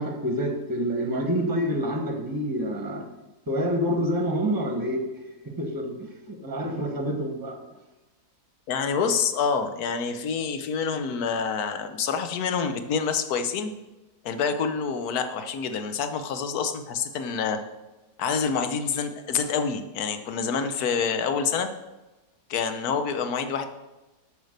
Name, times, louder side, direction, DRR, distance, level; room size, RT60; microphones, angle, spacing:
voice 1, 0.0-3.0 3.5-5.0 5.5-7.6, equal, 15° right, 4 dB, 1.2 m, -27 dB
voice 2, 8.7-13.7 14.2-17.6 18.2-21.7 22.5-23.7, left 6 dB, 65° left, 9 dB, 1.3 m, -27 dB
8.2 x 6.5 x 6.6 m, 1.1 s
omnidirectional pair, 1.8 m